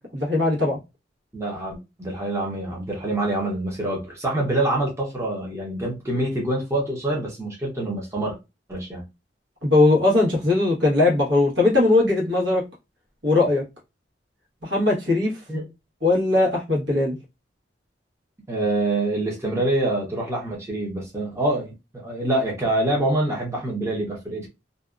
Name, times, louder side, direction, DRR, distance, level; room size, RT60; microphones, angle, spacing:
voice 1, 0.1-0.8 9.6-12.6 13.2-13.6 14.6-15.3 16.0-17.1, left 2 dB, 70° right, 1.2 m, -19 dB
voice 2, 1.3-8.4 8.7-9.0 15.5-15.6 18.5-24.5, right 1 dB, 15° right, 0.7 m, -26 dB
2.6 x 2.2 x 2.3 m
head